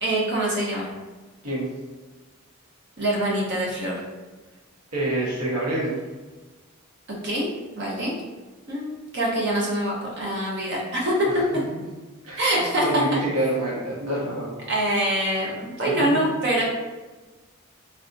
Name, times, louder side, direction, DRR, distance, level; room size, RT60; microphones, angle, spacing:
voice 1, 0.0-0.9 3.0-4.0 7.1-8.1 8.7-11.1 12.4-13.0 14.7-16.6, right 1 dB, 50° right, -4 dB, 0.7 m, -25 dB
voice 2, 4.9-6.0 11.2-11.4 12.2-14.5 15.8-16.3, right 1 dB, 90° right, -6 dB, 1.1 m, -27 dB
3.3 x 2.5 x 2.5 m, 1.3 s
head